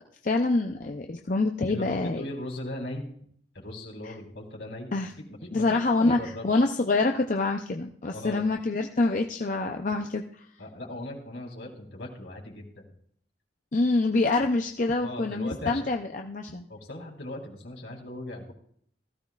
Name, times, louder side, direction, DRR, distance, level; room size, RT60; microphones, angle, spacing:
voice 1, 0.2-2.2 4.9-5.1 5.5-10.4 13.7-16.7, left 3 dB, 45° left, 3 dB, 0.6 m, -26 dB
voice 2, 1.7-3.1 3.5-6.7 8.1-8.5 10.6-12.8 15.0-15.8 16.7-18.5, left 1 dB, 70° left, -1 dB, 3.9 m, -39 dB
17.0 x 14.5 x 2.4 m, 0.64 s
head